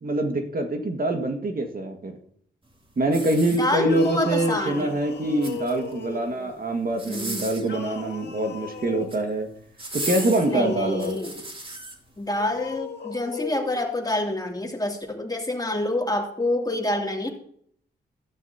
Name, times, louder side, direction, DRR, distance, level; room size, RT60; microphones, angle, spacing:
voice 1, 0.0-2.2 3.0-9.5 9.9-11.2, right 1 dB, 50° right, 4 dB, 1.9 m, -25 dB
sound 1, 3.0-4.1 5.2-6.0 6.9-7.7 8.8-9.2 9.8-11.9 12.5-12.7, right 2 dB, 30° right, 2.9 m, -35 dB
voice 2, 3.6-4.9 7.0-7.5 10.4-11.4 12.2-17.3, left 1 dB, 20° left, 1 dB, 2.8 m, -27 dB
sound 2, 3.8-6.5 7.6-9.1 9.9-11.4 12.3-13.8, left 6 dB, 65° left, 2.1 m, -37 dB
13.5 x 11.5 x 2.9 m, 0.64 s
supercardioid pair, 45°, 19 cm